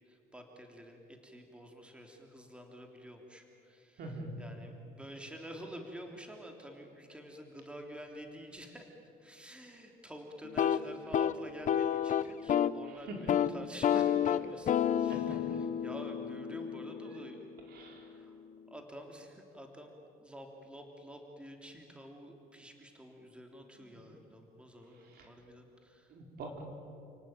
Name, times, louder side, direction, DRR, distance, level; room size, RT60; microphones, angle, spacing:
voice 1, 0.1-4.0 4.4-17.4 18.0-18.4 18.7-19.9 20.2-26.2, equal, 5° right, 3 dB, 3.3 m, -49 dB
voice 2, 4.0-4.4 12.8-13.3 15.0-15.4 17.1-17.2 17.7-18.2 23.7-24.0 24.9-25.3 26.1-26.6, right 1 dB, 65° right, 2 dB, 4.9 m, -45 dB
sound 1, 10.4-12.8 13.1-13.5 13.8-17.7, left 9 dB, 50° left, 0.8 m, -31 dB
30.0 x 18.5 x 9.4 m, 2.6 s
cardioid pair, 110°, 17 cm